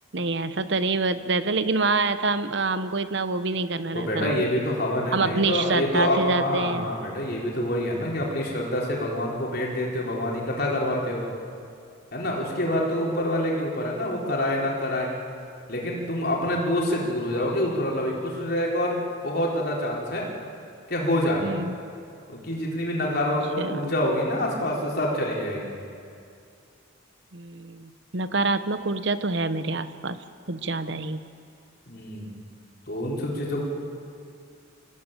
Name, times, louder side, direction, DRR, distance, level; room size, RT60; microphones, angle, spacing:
voice 1, 0.1-4.4 5.1-6.9 21.4-21.8 23.6-23.8 27.3-30.2 30.5-31.2, right 3 dB, 60° right, 12 dB, 1.0 m, -26 dB
voice 2, 3.9-11.2 12.1-15.1 15.7-20.3 20.9-21.4 22.3-25.8 31.9-32.3 32.9-33.6, left 1 dB, 50° left, -2 dB, 4.2 m, -26 dB
24.0 x 17.0 x 9.1 m, 2.4 s
head